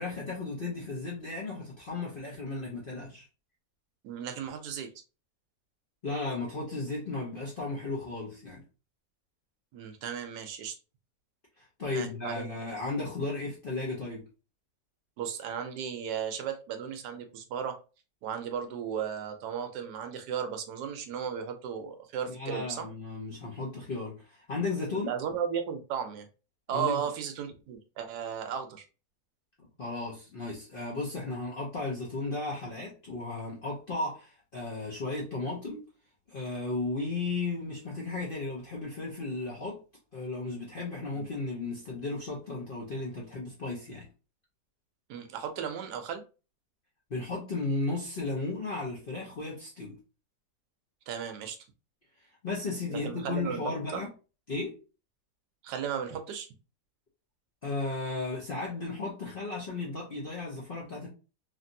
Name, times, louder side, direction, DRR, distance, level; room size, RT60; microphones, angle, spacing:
voice 1, 0.0-3.2 6.0-8.6 11.6-14.2 22.3-25.1 26.7-27.1 29.6-35.8 36.3-39.8 40.1-44.1 47.1-49.9 52.4-54.1 54.5-54.8 57.6-61.1, left 3 dB, 50° left, 0.7 m, -35 dB
voice 2, 4.0-4.9 9.7-10.8 11.9-12.5 15.2-17.8 18.2-22.9 24.9-26.3 26.7-28.9 41.2-41.3 45.1-46.2 51.1-51.6 52.9-53.6 53.9-54.0 55.6-56.5, right 8 dB, 75° right, 1.1 m, -35 dB
3.1 x 2.5 x 2.6 m
omnidirectional pair, 1.8 m